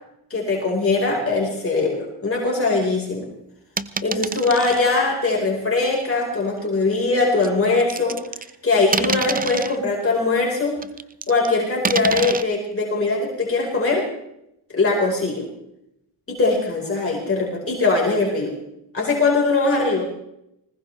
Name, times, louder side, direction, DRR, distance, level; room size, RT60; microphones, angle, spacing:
voice 1, 0.3-3.3 4.0-8.2 8.6-10.8 11.3-14.1 14.7-15.5 16.3-18.5 18.9-20.0, left 3 dB, 30° left, -2 dB, 4.7 m, -21 dB
sound 1, 3.8-4.8 5.9-6.0 7.4-8.6 8.9-9.8 10.8-11.5 11.9-12.4, right 5 dB, 20° right, 0.6 m, -26 dB
20.0 x 19.5 x 3.4 m, 0.82 s
cardioid pair, 90°, 47 cm